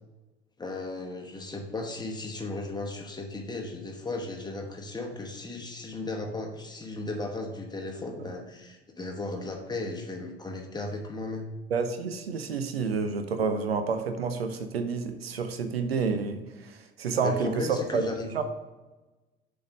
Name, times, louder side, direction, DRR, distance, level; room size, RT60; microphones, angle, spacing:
voice 1, 0.6-11.5 17.2-18.4, left 2 dB, 15° left, 2 dB, 1.1 m, -36 dB
voice 2, 11.7-18.1 18.3-18.4, right 5 dB, 80° right, 8 dB, 0.6 m, -29 dB
6.9 x 3.5 x 5.2 m, 1.2 s
figure-of-eight pair, 60°, 30 cm